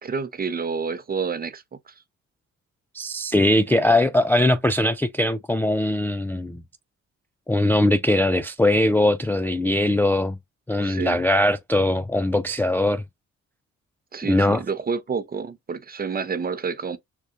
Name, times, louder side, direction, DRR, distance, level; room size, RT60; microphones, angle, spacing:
voice 1, 0.0-1.9 3.7-3.9 10.8-11.2 14.1-17.0, right 5 dB, 30° right, 0.6 m, -29 dB
voice 2, 2.9-6.6 7.5-10.4 10.7-13.0 14.2-14.6, left 1 dB, 5° left, 0.3 m, -21 dB
6.5 x 2.3 x 2.5 m
cardioid pair, 90°, 30 cm